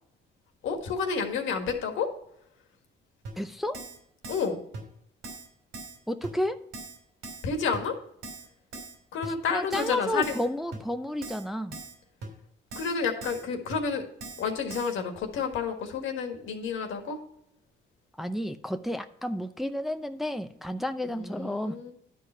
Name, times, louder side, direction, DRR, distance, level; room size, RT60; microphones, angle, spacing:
voice 1, 0.6-2.1 4.3-4.6 7.4-8.0 9.1-10.3 12.7-14.0 14.4-17.2 21.1-21.9, left 5 dB, 80° left, 5 dB, 1.7 m, -30 dB
Keyboard (musical), 3.2-3.3 3.7-4.0 4.2-4.5 4.7-4.8 5.2-5.5 5.7-6.0 6.2-6.3 6.7-7.0 7.2-7.5 7.7-7.8 8.2-8.5 8.7-8.9 9.2-9.3 9.7-9.9 10.2-10.5 10.7-10.8 11.2-11.4 11.7-11.9 12.2-12.3 12.7-12.9 13.2-13.4 13.7-13.8 14.2-14.4 14.7-14.9, right 3 dB, 90° right, 3.0 m, -40 dB
voice 2, 3.4-3.8 6.1-6.6 9.5-11.8 18.2-21.9, left 1 dB, ahead, 8 dB, 0.6 m, -31 dB
11.0 x 4.7 x 5.4 m, 0.73 s
cardioid pair, 90°, 20 cm